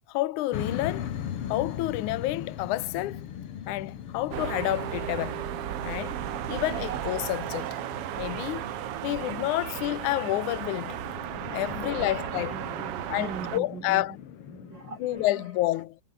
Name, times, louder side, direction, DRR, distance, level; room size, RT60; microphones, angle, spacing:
voice 1, 0.1-1.1 1.5-3.3 3.7-5.4 5.8-6.2 6.5-7.8 8.2-11.0 11.5-12.6 13.1-14.2 15.0-16.0, left 16 dB, 75° left, 2.4 m, -29 dB
sound 1, 0.5-15.3, left 9 dB, 50° left, 2.1 m, -40 dB
sound 2, 4.3-13.6, right 13 dB, 65° right, 1.5 m, -34 dB
voice 2, 11.6-14.2 14.5-15.4, right 6 dB, 40° right, 2.2 m, -42 dB
omnidirectional pair, 3.7 m